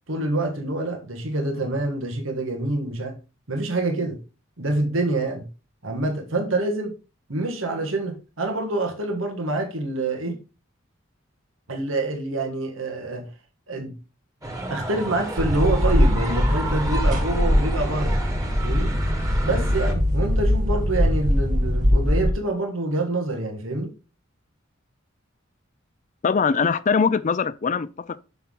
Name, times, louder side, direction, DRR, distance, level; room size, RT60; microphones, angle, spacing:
voice 1, 0.1-3.2 3.5-4.2 4.6-5.5 5.8-6.9 7.3-10.4 11.7-13.3 13.7-14.0 14.7-18.2 18.6-19.0 19.4-23.9, right 2 dB, 90° right, 1.7 m, -26 dB
sound 1, 14.4-19.9, right 1 dB, 15° right, 1.6 m, -32 dB
sound 2, 15.4-22.3, equal, 40° right, 1.7 m, -21 dB
voice 2, 26.2-28.2, left 5 dB, 40° left, 0.4 m, -22 dB
6.8 x 6.0 x 3.8 m
head